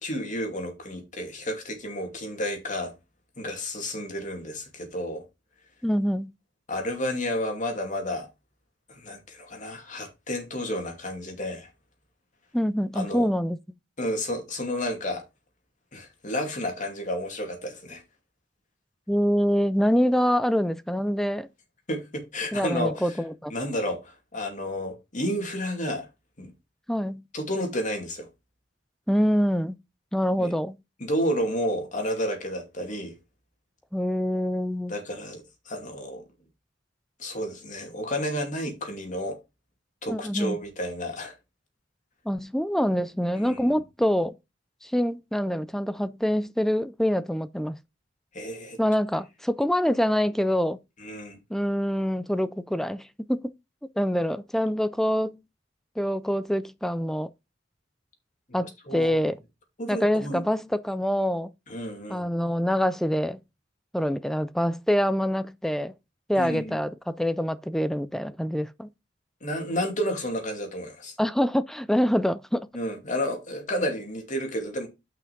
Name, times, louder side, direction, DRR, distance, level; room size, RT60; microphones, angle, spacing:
voice 1, 0.0-2.9 3.4-5.2 6.7-8.3 8.9-11.7 12.9-13.3 14.0-15.2 15.9-18.0 21.9-23.2 23.5-26.1 26.4-26.5 27.3-28.3 30.3-30.5 31.0-33.1 34.9-36.2 37.2-39.4 40.0-41.3 43.4-43.6 48.3-48.8 51.0-51.4 58.5-59.2 59.8-60.4 61.7-62.3 66.3-66.8 69.4-71.2 72.7-74.9, equal, 45° left, 2.6 m, -31 dB
voice 2, 5.8-6.3 12.5-13.6 19.1-21.5 22.5-23.5 26.9-27.2 29.1-29.8 30.1-30.8 33.9-34.9 40.1-40.6 42.3-44.4 44.8-47.8 48.8-50.8 51.5-53.4 54.0-55.4 56.0-57.3 58.5-59.4 59.9-61.5 62.1-63.4 63.9-65.9 66.3-68.9 71.2-72.7, equal, ahead, 0.4 m, -25 dB
6.0 x 5.8 x 5.3 m
head